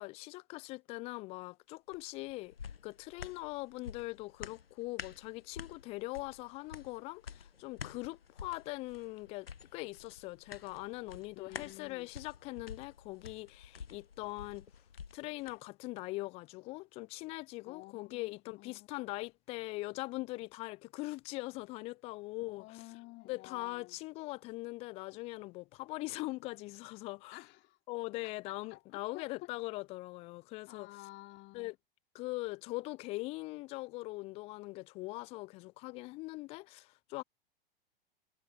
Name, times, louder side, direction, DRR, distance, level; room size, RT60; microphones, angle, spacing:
voice 1, 0.0-14.7 15.1-22.8 23.2-27.4 27.9-30.9 31.5-31.8 32.1-37.2, left 22 dB, 20° left, 0.3 m, -42 dB
sound 1, 1.9-15.6 16.0-16.1, left 6 dB, 80° left, 1.1 m, -50 dB
voice 2, 11.3-12.1 17.7-18.9 22.5-24.0 27.3-27.8 28.5-29.5 30.7-31.7, left 20 dB, 40° left, 3.2 m, -52 dB
figure-of-eight pair, 95°, 29 cm